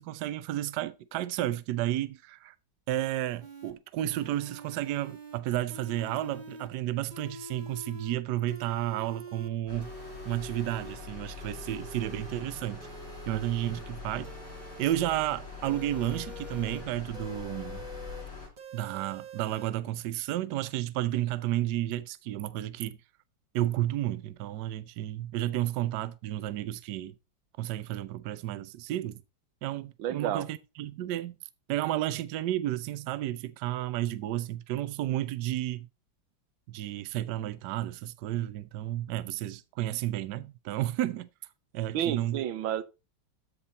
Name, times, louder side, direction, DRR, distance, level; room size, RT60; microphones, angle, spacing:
voice 1, 0.0-2.5 2.9-9.9 10.2-12.8 13.3-14.3 14.8-17.9 18.7-23.0 23.5-27.1 27.6-29.2 29.6-31.3 31.7-35.9 36.7-41.3 41.7-42.4, right 13 dB, 70° right, 1.2 m, -32 dB
sound 1, 3.4-3.7 4.1-5.4 5.7-6.7 7.1-8.2 8.5-9.5 9.8-11.0 11.4-12.4 12.8-13.8 14.2-15.3 15.6-16.8 17.1-18.2 18.6-19.7, right 2 dB, 25° right, 1.2 m, -45 dB
sound 2, 9.7-18.5, left 4 dB, 40° left, 5.2 m, -43 dB
voice 2, 30.0-30.5 41.9-42.8, right 11 dB, 85° right, 1.5 m, -30 dB
13.5 x 5.5 x 4.0 m
omnidirectional pair, 2.1 m